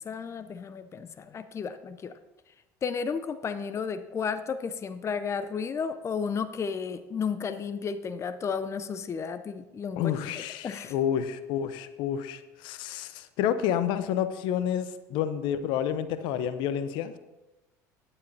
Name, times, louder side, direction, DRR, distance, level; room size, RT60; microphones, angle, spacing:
voice 1, 0.0-2.2 2.8-10.9, left 6 dB, 30° left, 11 dB, 0.6 m, -33 dB
voice 2, 10.0-17.2, left 9 dB, 60° left, 12 dB, 0.8 m, -29 dB
16.0 x 9.9 x 2.8 m, 1.0 s
hypercardioid pair, 65°, 9 cm